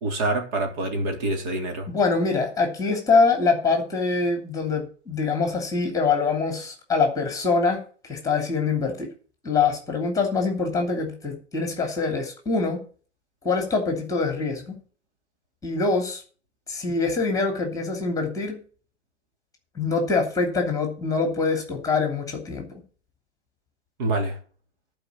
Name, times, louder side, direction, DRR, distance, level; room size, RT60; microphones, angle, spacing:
voice 1, 0.0-1.9 24.0-24.4, right 2 dB, 40° right, 3.5 m, -26 dB
voice 2, 1.9-9.1 9.4-12.8 13.4-14.8 15.6-16.2 16.7-18.6 19.8-22.8, left 4 dB, 10° left, 2.9 m, -24 dB
11.5 x 5.2 x 8.6 m
figure-of-eight pair, 120°, 35 cm